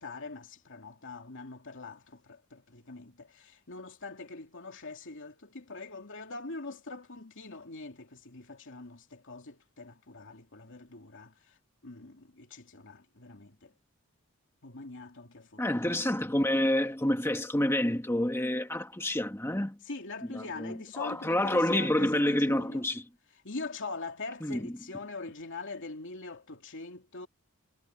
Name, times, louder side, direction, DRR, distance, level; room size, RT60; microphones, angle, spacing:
voice 1, 0.0-11.6 11.8-13.7 14.6-15.8 19.8-22.8 23.4-27.3, left 3 dB, 60° left, 2.9 m, -43 dB
voice 2, 15.6-19.8 20.3-23.0 24.4-24.6, left 1 dB, 10° left, 1.4 m, -28 dB
head